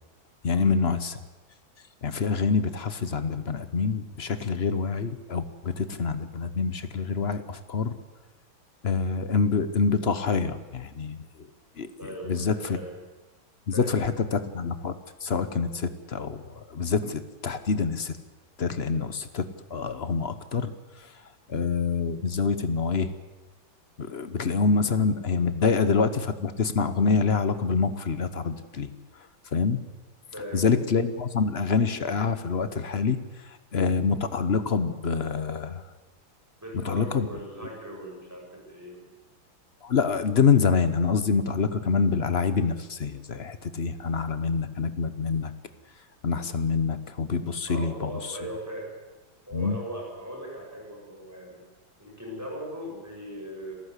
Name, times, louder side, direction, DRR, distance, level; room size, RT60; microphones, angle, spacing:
voice 1, 0.4-1.2 2.0-8.0 8.8-11.2 11.8-12.8 13.7-18.2 18.6-20.7 21.0-21.1 21.5-23.1 24.0-28.9 29.5-29.8 30.5-35.8 36.7-37.3 39.8-45.5 46.2-48.4 49.5-49.8, left 5 dB, 40° left, 12 dB, 1.0 m, -26 dB
voice 2, 12.0-12.9 13.7-14.2 24.7-24.8 25.6-25.7 30.3-30.8 36.6-39.1 47.7-48.9 49.5-51.6 52.0-53.7, equal, 5° right, -2 dB, 7.8 m, -39 dB
26.5 x 14.0 x 8.3 m, 1.2 s
omnidirectional pair, 2.2 m